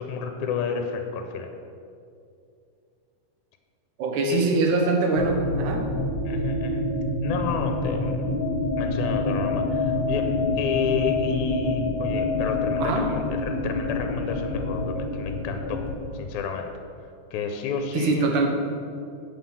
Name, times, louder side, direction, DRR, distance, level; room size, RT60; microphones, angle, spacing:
voice 1, 0.0-1.5 4.3-4.4 6.3-6.9 7.2-8.3 8.8-15.8 16.1-16.7 17.3-18.5, left 5 dB, 80° left, 5 dB, 2.0 m, -31 dB
voice 2, 4.0-5.8 12.8-13.1 17.9-18.5, right 3 dB, 80° right, 3 dB, 2.5 m, -23 dB
sound 1, 5.1-16.0, left 2 dB, 50° left, 1.5 m, -27 dB
8.5 x 5.6 x 7.3 m, 2.5 s
omnidirectional pair, 3.5 m